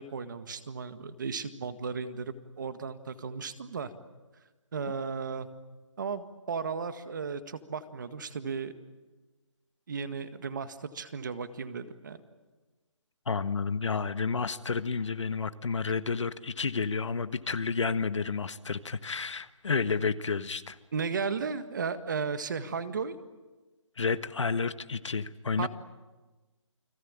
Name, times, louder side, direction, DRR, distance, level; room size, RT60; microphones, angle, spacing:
voice 1, 0.0-3.9 4.7-5.5 6.0-8.7 9.9-12.2 20.9-23.2 25.6-25.7, right 5 dB, 40° right, 11 dB, 1.8 m, -35 dB
voice 2, 13.3-20.8 24.0-25.7, left 5 dB, 65° left, 12 dB, 1.4 m, -30 dB
29.5 x 22.0 x 8.8 m, 1.2 s
hypercardioid pair, 170°, 16 cm